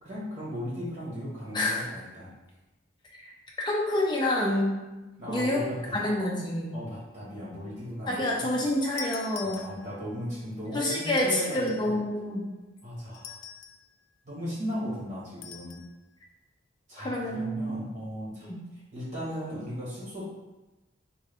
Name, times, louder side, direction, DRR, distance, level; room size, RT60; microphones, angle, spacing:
voice 1, 0.0-2.3 5.2-6.1 6.7-8.7 9.4-12.0 12.8-13.4 14.2-15.8 16.9-18.5 18.9-20.2, equal, 35° right, -8 dB, 1.4 m, -37 dB
voice 2, 3.6-4.8 5.3-5.6 5.9-6.7 8.1-9.6 10.7-12.5 17.0-17.9 18.5-18.6, left 1 dB, 25° left, -2 dB, 0.5 m, -28 dB
sound 1, 9.0-10.1 11.1-11.9 13.1-13.9 15.4-15.9, left 8 dB, 85° left, 0.3 m, -43 dB
3.5 x 2.2 x 3.5 m, 1.1 s
head